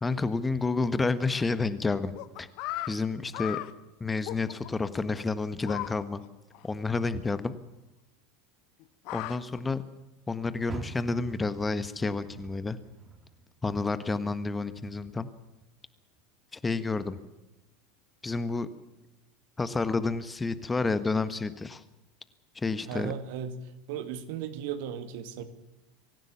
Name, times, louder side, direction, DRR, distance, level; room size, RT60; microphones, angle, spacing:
voice 1, 0.0-2.1 2.4-2.5 2.9-3.6 4.0-6.2 6.6-7.6 9.1-9.8 10.3-12.8 13.6-15.3 16.5-17.2 18.2-18.7 19.6-21.8 22.5-23.1, left 3 dB, 15° left, 13 dB, 1.4 m, -30 dB
sound 1, 2.2-2.9 3.3-3.7 4.3-4.9 5.6-5.9 6.2-6.3 6.5-6.7 7.0-7.1 8.8-9.6, left 17 dB, 55° left, 1.2 m, -36 dB
Car, 10.6-13.9 14.3-15.7 16.1-16.2 16.8-16.9, right 3 dB, 25° right, 4.0 m, -45 dB
voice 2, 22.9-23.6 23.9-25.4, right 8 dB, 60° right, 10 dB, 2.1 m, -36 dB
24.5 x 15.5 x 7.1 m, 0.97 s
figure-of-eight pair, 80°, 0 cm